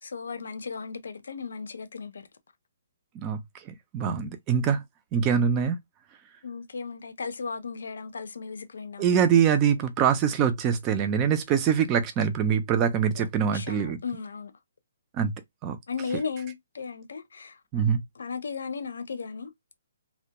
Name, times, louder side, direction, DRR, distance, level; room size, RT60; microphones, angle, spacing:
voice 1, 0.0-2.2 4.0-4.3 6.4-9.1 13.2-13.3 13.5-14.5 15.9-17.6 18.2-19.5, left 5 dB, 75° left, 0.5 m, -36 dB
voice 2, 3.7-4.8 5.1-5.8 9.0-14.0 15.2-15.3 15.6-15.8 17.7-18.0, right 7 dB, 15° right, 0.3 m, -24 dB
2.2 x 2.1 x 2.8 m
hypercardioid pair, 170°, 0 cm